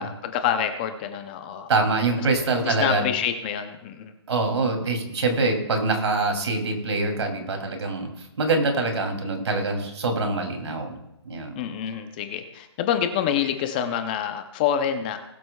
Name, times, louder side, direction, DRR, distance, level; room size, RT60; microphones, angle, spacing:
voice 1, 0.0-1.7 2.2-2.3 2.6-4.1 11.5-15.2, left 9 dB, 20° left, 8 dB, 0.6 m, -27 dB
voice 2, 1.7-3.1 4.3-8.1 8.4-11.0 11.2-11.5, right 3 dB, 75° right, 3 dB, 2.8 m, -24 dB
20.0 x 7.8 x 2.3 m, 0.89 s
hypercardioid pair, 165°, 15 cm